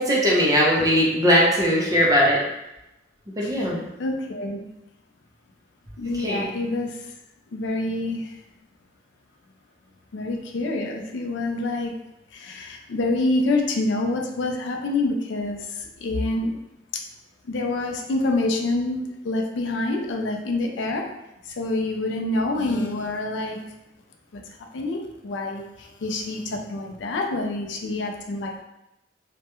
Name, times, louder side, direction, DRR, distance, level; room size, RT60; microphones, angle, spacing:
voice 1, 0.0-2.4 3.4-3.8 6.1-6.5, equal, 20° right, -4 dB, 0.4 m, -19 dB
voice 2, 4.0-4.7 6.0-7.1 7.5-8.4 10.1-11.9 12.3-16.6 16.9-17.0 17.5-21.1 21.5-23.6 24.3-24.4 24.7-28.6, left 2 dB, 80° left, 2 dB, 0.4 m, -27 dB
2.2 x 2.1 x 2.9 m, 0.90 s
head